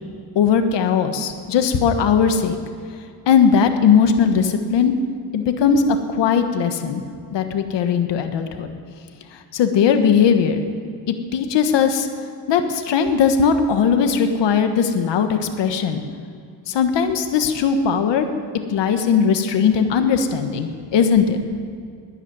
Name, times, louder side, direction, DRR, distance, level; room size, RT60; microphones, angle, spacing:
voice 1, 0.3-2.6 3.3-4.9 5.3-5.8 6.1-7.0 7.3-8.7 9.5-10.6 11.3-12.1 12.5-16.0 16.7-18.3 18.7-21.4, left 7 dB, 80° left, 7 dB, 1.4 m, -18 dB
12.5 x 10.5 x 9.8 m, 2.2 s
cardioid pair, 100°, 42 cm